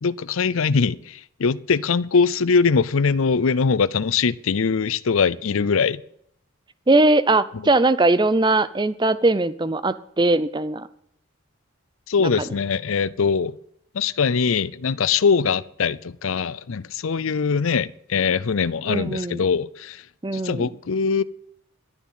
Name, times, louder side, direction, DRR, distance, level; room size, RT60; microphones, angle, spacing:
voice 1, 0.0-6.0 12.1-13.6 13.9-20.0 20.3-21.2, left 5 dB, 75° left, 19 dB, 0.5 m, -22 dB
voice 2, 6.9-10.9 12.2-12.5 18.9-19.4 20.2-20.7, right 2 dB, 20° right, 15 dB, 0.6 m, -20 dB
12.0 x 7.1 x 9.3 m, 0.70 s
head